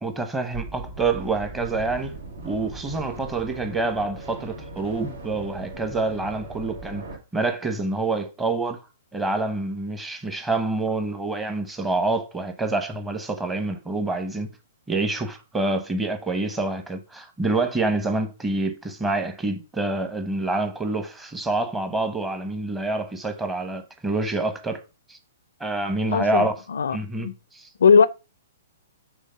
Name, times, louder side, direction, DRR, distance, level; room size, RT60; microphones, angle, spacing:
voice 1, 0.0-2.1 2.4-7.0 7.3-8.8 9.1-14.5 14.9-24.8 25.1-25.2 25.6-26.5 26.9-27.7, right 2 dB, 10° right, 1.0 m, -27 dB
sound 1, 0.5-7.2, right 2 dB, 75° right, 1.9 m, -38 dB
voice 2, 26.1-27.3 27.8-28.1, left 6 dB, 75° left, 0.4 m, -19 dB
6.2 x 3.2 x 5.6 m
hypercardioid pair, 130°, 0 cm